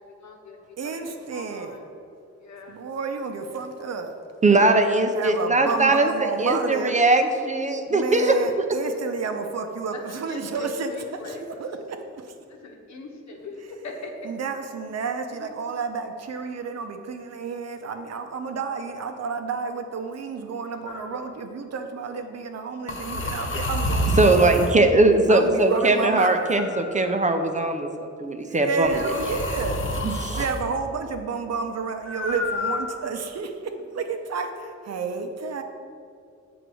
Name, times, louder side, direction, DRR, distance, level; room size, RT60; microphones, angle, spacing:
voice 1, 0.2-0.6 0.8-1.0 1.3-1.9 2.4-2.8 10.3-11.4 12.6-14.1 15.4-15.5, left 3 dB, 70° left, 2 dB, 1.2 m, -40 dB
voice 2, 0.8-1.8 2.7-4.1 5.2-6.9 7.9-10.9 11.2-12.0 14.2-24.5 25.3-26.5 28.5-29.8 30.3-35.6, right 4 dB, 60° right, 6 dB, 0.7 m, -30 dB
voice 3, 4.4-8.2 23.1-23.2 24.2-29.1 30.0-30.4, right 2 dB, 25° right, 6 dB, 0.5 m, -20 dB
sound 1, 20.9-21.2 22.9-24.8 26.2-27.3 28.8-30.6 32.0-33.2, equal, 45° left, 0.9 m, -29 dB
7.8 x 4.0 x 6.2 m, 2.4 s
wide cardioid pair, 125°, 29 cm